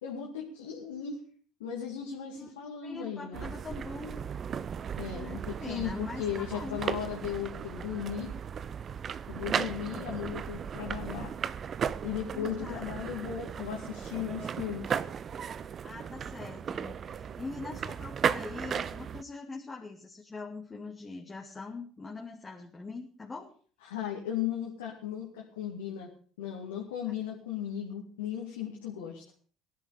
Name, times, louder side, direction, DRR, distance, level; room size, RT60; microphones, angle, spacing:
voice 1, 0.0-1.2 1.6-3.5 5.0-8.3 9.3-11.3 12.0-15.0 23.9-26.1 26.4-29.2, left 9 dB, 80° left, -2 dB, 2.5 m, -36 dB
voice 2, 2.8-4.3 5.1-6.9 12.3-12.9 15.8-23.5, left 3 dB, 25° left, 0 dB, 2.5 m, -43 dB
sound 1, 3.3-19.2, right 7 dB, 45° right, 0.7 m, -36 dB
18.0 x 11.5 x 5.1 m, 0.43 s
hypercardioid pair, 60°, 0 cm